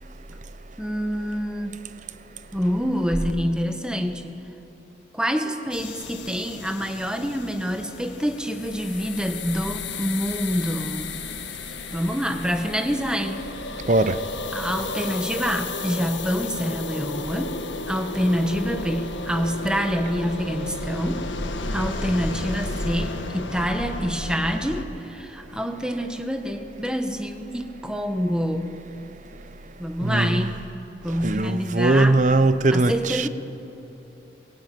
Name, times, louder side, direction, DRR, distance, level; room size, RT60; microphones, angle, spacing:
voice 1, 0.8-1.8 2.5-4.4 5.1-11.1 11.9-13.4 14.5-17.6 17.9-21.3 21.7-28.7 29.8-30.6 31.0-32.2 32.7-33.3, equal, 5° right, 1.5 m, -26 dB
sound 1, 5.7-24.8, left 3 dB, 80° left, 1.6 m, -33 dB
voice 2, 30.0-30.5 31.2-33.3, right 2 dB, 40° right, 0.8 m, -20 dB
28.0 x 22.0 x 9.4 m
head